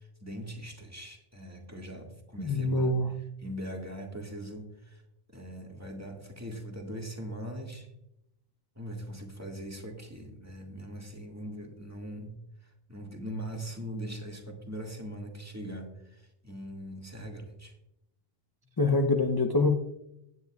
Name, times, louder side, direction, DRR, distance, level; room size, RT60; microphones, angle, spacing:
voice 1, 0.2-2.9 3.4-5.0 5.3-7.9 8.7-12.3 12.9-17.8, equal, 15° right, 1 dB, 1.8 m, -41 dB
voice 2, 2.4-3.2 18.8-19.8, left 2 dB, 25° left, 5 dB, 0.6 m, -25 dB
16.5 x 9.5 x 2.4 m, 0.85 s
omnidirectional pair, 1.0 m